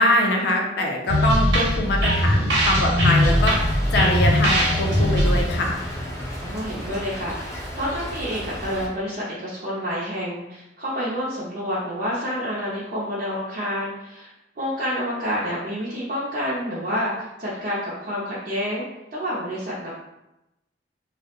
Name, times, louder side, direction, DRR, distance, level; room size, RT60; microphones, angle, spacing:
voice 1, 0.0-5.8, left 1 dB, 65° left, 0 dB, 0.5 m, -23 dB
sound 1, 1.1-6.7, equal, 80° right, 0.8 m, -20 dB
Stream / Trickle dribble, 3.1-8.9, equal, 15° left, 0.5 m, -34 dB
voice 2, 6.4-18.9 19.1-19.9, equal, 55° right, -8 dB, 0.5 m, -28 dB
2.3 x 2.1 x 2.8 m, 0.92 s
head